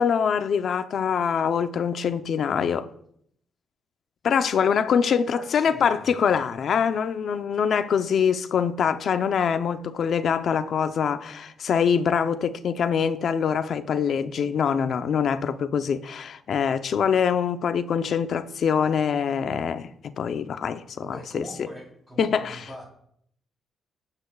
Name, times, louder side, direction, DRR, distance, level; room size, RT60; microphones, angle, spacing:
voice 1, 0.0-2.9 4.2-21.4 22.2-22.6, left 7 dB, 65° left, 0.7 m, -24 dB
voice 2, 5.2-6.4 21.0-22.9, equal, ahead, 3.8 m, -42 dB
18.5 x 8.8 x 2.4 m
cardioid pair, 80°, 0 cm